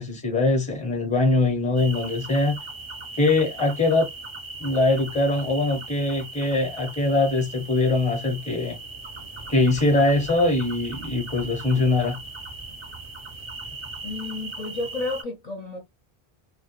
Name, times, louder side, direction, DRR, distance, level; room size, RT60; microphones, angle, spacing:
voice 1, 0.0-2.6 3.2-4.1 4.6-8.8 9.5-12.2, left 2 dB, 10° left, 0.6 m, -22 dB
sound 1, 1.8-15.2, right 3 dB, 40° right, 0.4 m, -38 dB
voice 2, 14.0-15.8, left 3 dB, 50° left, 0.6 m, -31 dB
2.1 x 2.1 x 2.9 m
omnidirectional pair, 1.0 m